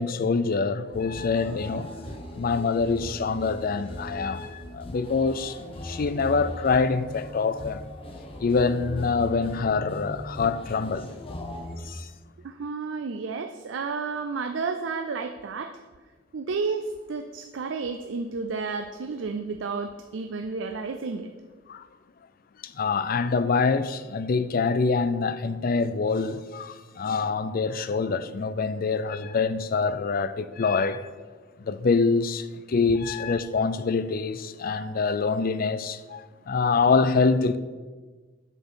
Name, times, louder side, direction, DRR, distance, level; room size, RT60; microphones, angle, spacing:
voice 1, 0.0-1.9 2.3-5.6 5.8-7.9 8.4-11.1 11.8-12.1 21.7-21.8 22.6-31.1 31.6-37.6, left 4 dB, 50° left, 0.4 m, -25 dB
sound 1, 0.9-11.8, left 1 dB, 30° left, 1.0 m, -39 dB
voice 2, 12.4-15.8 16.3-21.3, right 4 dB, 85° right, 0.5 m, -31 dB
7.3 x 5.9 x 5.6 m
head